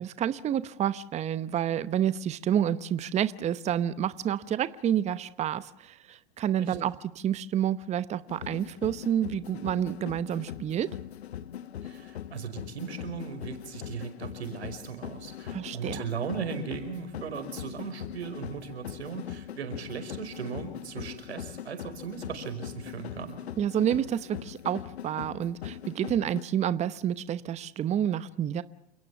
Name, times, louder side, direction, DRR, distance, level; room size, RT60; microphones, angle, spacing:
voice 1, 0.0-10.9 15.5-16.0 23.6-28.6, right 10 dB, 20° right, 16 dB, 0.9 m, -29 dB
sound 1, 8.3-26.4, left 10 dB, 80° left, 1.2 m, -41 dB
voice 2, 11.8-23.4, right 6 dB, 80° right, 8 dB, 5.2 m, -37 dB
29.0 x 17.5 x 7.1 m, 0.74 s
hypercardioid pair, 115°, 32 cm